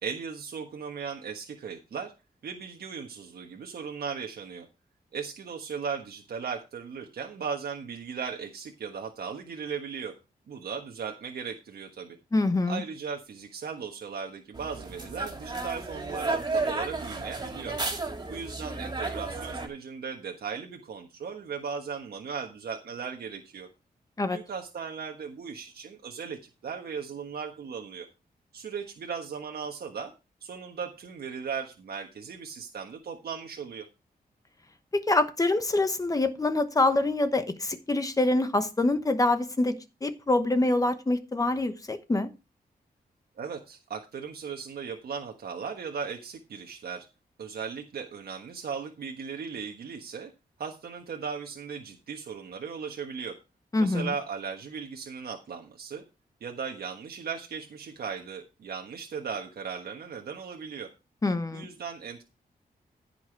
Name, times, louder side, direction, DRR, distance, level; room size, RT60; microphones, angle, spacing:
voice 1, 0.0-2.1 2.4-4.7 5.1-10.1 10.5-12.2 12.7-17.8 18.3-23.7 24.3-28.1 28.5-30.1 30.4-33.9 43.4-47.1 47.4-50.3 50.6-53.4 53.8-56.0 56.4-60.9 61.5-62.2, right 6 dB, 75° right, 1.4 m, -37 dB
voice 2, 12.3-12.8 24.2-24.4 34.9-42.3 53.7-54.1 61.2-61.7, left 2 dB, 20° left, 1.0 m, -25 dB
sound 1, 14.5-19.7, right 3 dB, 25° right, 3.0 m, -33 dB
15.0 x 5.9 x 4.5 m
wide cardioid pair, 180°, 16 cm